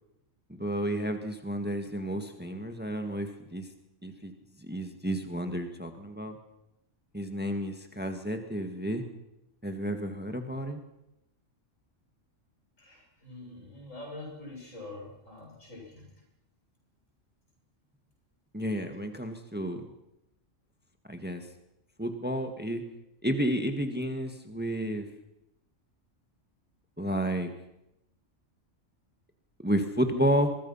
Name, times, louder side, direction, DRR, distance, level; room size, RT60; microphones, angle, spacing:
voice 1, 0.5-3.7 4.0-4.3 4.6-6.4 7.1-9.0 9.6-10.8 18.5-19.8 21.1-21.4 22.0-22.8 23.2-25.1 27.0-27.5 29.6-30.6, equal, 10° right, 6 dB, 1.9 m, -31 dB
voice 2, 12.8-16.1, left 2 dB, 85° left, -1 dB, 7.3 m, -45 dB
24.0 x 22.5 x 5.8 m, 0.87 s
omnidirectional pair, 1.3 m